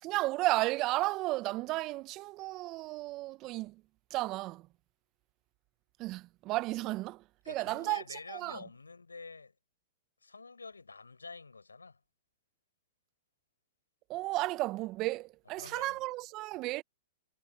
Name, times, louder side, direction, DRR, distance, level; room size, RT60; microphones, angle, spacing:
voice 1, 0.0-3.8 4.1-4.7 6.0-8.6 14.1-16.8, right 19 dB, 40° right, 1.0 m, -33 dB
voice 2, 7.4-9.5 10.2-12.0 15.6-16.1, left 4 dB, 90° left, 5.0 m, -48 dB
hypercardioid pair, 105°, 0 cm